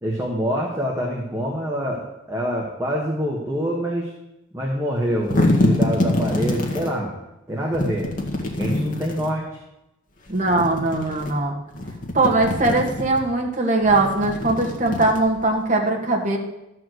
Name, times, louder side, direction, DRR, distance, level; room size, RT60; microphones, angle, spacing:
voice 1, 0.0-4.1 4.5-7.1 7.5-8.1 8.6-9.4, equal, 15° right, -3 dB, 1.6 m, -25 dB
sound 1, 5.0-6.9 7.7-9.3 10.3-11.3 11.7-13.2 13.8-15.6, left 1 dB, 40° left, 1.8 m, -25 dB
voice 2, 10.3-11.6 12.1-16.4, right 2 dB, 40° right, 1 dB, 1.8 m, -20 dB
13.0 x 4.8 x 7.9 m, 0.93 s
head